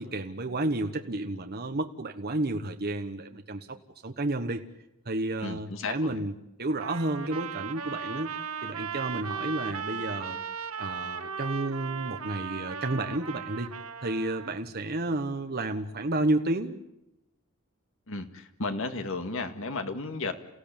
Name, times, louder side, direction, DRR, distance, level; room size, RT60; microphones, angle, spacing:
voice 1, 0.0-3.8 4.0-4.6 5.0-8.3 8.6-10.4 10.8-13.7 14.0-16.8, right 2 dB, 45° right, 5 dB, 1.3 m, -31 dB
voice 2, 5.4-6.2 18.1-20.3, left 3 dB, 65° left, 7 dB, 2.1 m, -33 dB
Trumpet, 6.8-14.6, right 6 dB, 75° right, 1.4 m, -37 dB
29.5 x 16.5 x 8.9 m, 0.90 s
head